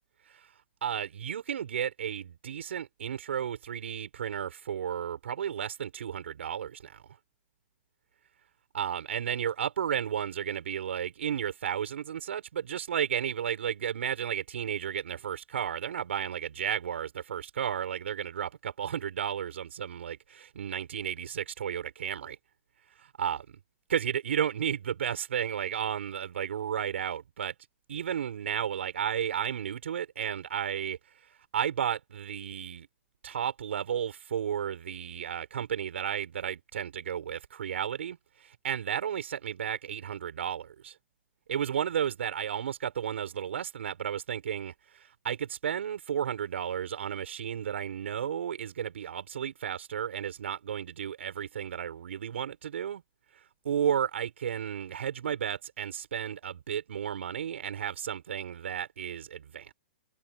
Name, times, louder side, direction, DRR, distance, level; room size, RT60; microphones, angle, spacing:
voice 1, 0.8-7.0 8.7-22.4 23.2-23.6 23.9-27.5 27.9-31.0 31.5-32.9 33.2-38.2 38.4-40.9 41.5-53.0 53.6-59.7, right 9 dB, 80° right, 5.9 m, -33 dB
hypercardioid pair, 140°, 6 cm